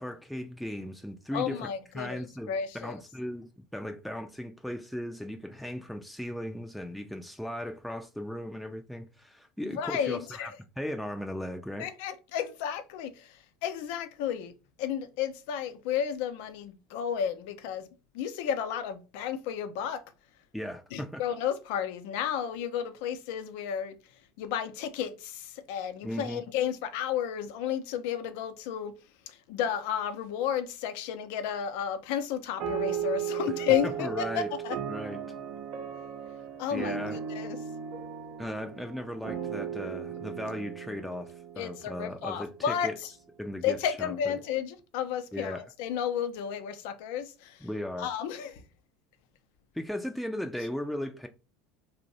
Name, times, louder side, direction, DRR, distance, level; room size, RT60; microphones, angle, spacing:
voice 1, 0.0-1.7 1.9-11.9 20.5-21.2 26.0-26.5 33.8-34.5 34.9-35.2 36.7-37.2 38.4-43.0 43.4-44.4 45.3-45.6 47.6-48.1 49.7-51.3, equal, ahead, 0.4 m, -37 dB
voice 2, 1.3-2.2 2.5-2.9 9.6-10.5 11.8-14.5 14.8-17.9 18.1-20.0 20.9-24.0 24.4-28.9 29.3-34.8 36.6-37.6 41.6-43.1 43.6-47.7 48.0-48.6, left 9 dB, 65° left, 0.5 m, -32 dB
sound 1, 32.6-42.3, right 8 dB, 60° right, 0.5 m, -36 dB
2.6 x 2.1 x 3.9 m
hypercardioid pair, 80°, 0 cm